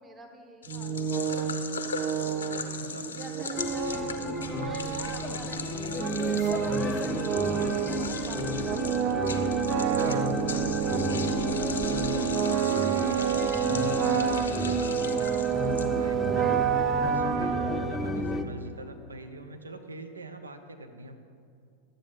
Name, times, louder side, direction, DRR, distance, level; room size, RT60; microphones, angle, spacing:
voice 1, 0.0-1.3 2.2-9.0 13.2-15.3, right 2 dB, 15° right, 4 dB, 0.9 m, -49 dB
sound 1, 0.6-16.2, left 5 dB, 70° left, 0.7 m, -39 dB
sound 2, 0.7-18.3, right 8 dB, 35° right, 0.5 m, -29 dB
sound 3, 3.6-18.4, left 4 dB, 15° left, 0.5 m, -34 dB
voice 2, 6.6-7.0 7.6-7.8 9.7-10.4 15.8-21.2, right 1 dB, 75° right, 6 dB, 0.7 m, -43 dB
11.5 x 7.8 x 4.0 m, 2.3 s
figure-of-eight pair, 90°, 0 cm